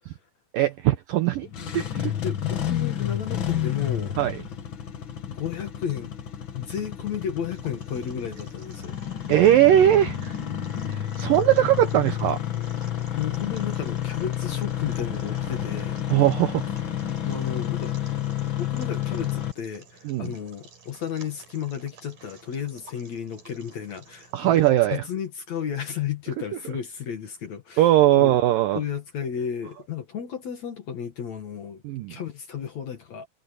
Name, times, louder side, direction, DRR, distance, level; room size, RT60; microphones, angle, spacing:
voice 1, 0.5-2.1 4.2-4.4 9.3-10.3 10.9-12.4 16.1-16.7 20.1-20.3 24.3-25.0 27.8-28.8 31.8-32.2, right 13 dB, 80° right, 2.0 m, -20 dB
Engine starting, 1.4-19.5, left 11 dB, 75° left, 1.1 m, -30 dB
voice 2, 2.2-4.2 5.3-6.1 6.5-9.0 13.1-16.0 17.2-17.9 18.6-24.6 24.9-28.3 28.7-31.8 32.1-33.3, left 8 dB, 50° left, 2.3 m, -33 dB
sound 1, 7.3-24.7, right 4 dB, 50° right, 6.2 m, -53 dB
omnidirectional pair, 5.0 m